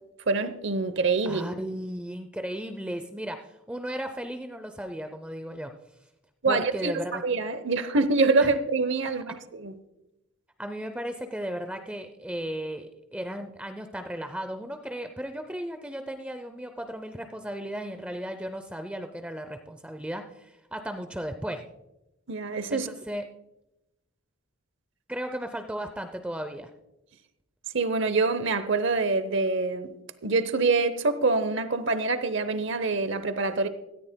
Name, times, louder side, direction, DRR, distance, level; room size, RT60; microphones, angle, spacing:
voice 1, 0.3-1.4 6.4-6.9 7.2-9.7 22.3-22.9 27.7-29.9 30.2-33.7, right 3 dB, 55° right, 0.8 m, -25 dB
voice 2, 1.3-5.7 6.4-7.2 8.4-8.5 10.6-21.7 22.7-23.2 25.1-26.7, equal, 5° right, 0.5 m, -35 dB
16.5 x 14.0 x 2.2 m
head